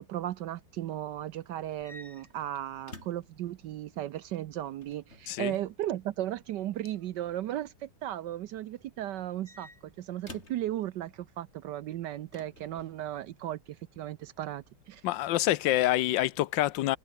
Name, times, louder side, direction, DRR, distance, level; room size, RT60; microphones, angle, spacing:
voice 1, 0.0-15.0, right 12 dB, 75° right, 1.3 m, -36 dB
sound 1, 1.7-3.4 4.6-5.4 6.9-7.3 9.1-10.7 12.3-13.0, left 1 dB, 35° left, 7.9 m, -51 dB
voice 2, 15.0-17.0, left 15 dB, 85° left, 1.4 m, -26 dB
omnidirectional pair, 2.0 m